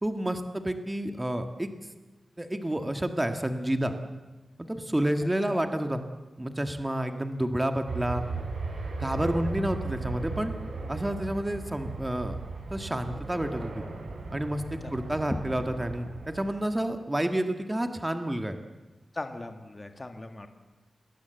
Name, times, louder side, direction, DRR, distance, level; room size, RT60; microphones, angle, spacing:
voice 1, 0.0-1.7 2.4-3.9 4.6-6.0 6.4-8.2 9.0-10.5 10.9-12.4 12.7-13.8 14.3-18.6, right 1 dB, 10° right, 7 dB, 1.6 m, -29 dB
sound 1, 7.9-16.6, right 3 dB, 80° right, 7.0 m, -37 dB
voice 2, 19.1-20.5, left 2 dB, 25° left, 6 dB, 1.8 m, -38 dB
28.5 x 20.5 x 8.1 m, 1.2 s
wide cardioid pair, 175°, 0 cm